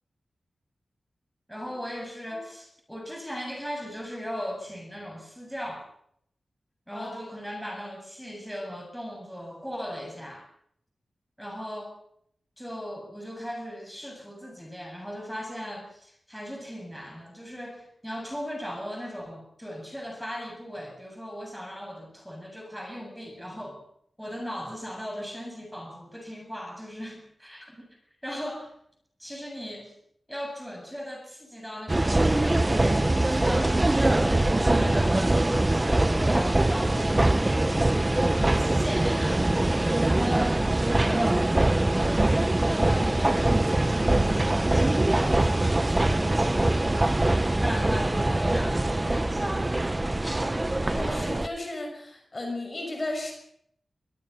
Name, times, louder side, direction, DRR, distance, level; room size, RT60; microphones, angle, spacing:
voice 1, 1.5-5.9 6.9-10.5 11.4-11.9 12.6-23.8 24.2-27.9 28.2-28.7 29.2-29.9 30.3-37.3 38.4-39.5 40.1-46.8 47.6-50.1, equal, ahead, 2 dB, 7.5 m, -38 dB
sound 1, 31.9-51.5, right 2 dB, 20° right, 1.0 m, -23 dB
voice 2, 50.9-53.3, left 2 dB, 30° left, 2 dB, 6.4 m, -34 dB
23.5 x 21.0 x 5.8 m, 0.69 s
wide cardioid pair, 120°, 0 cm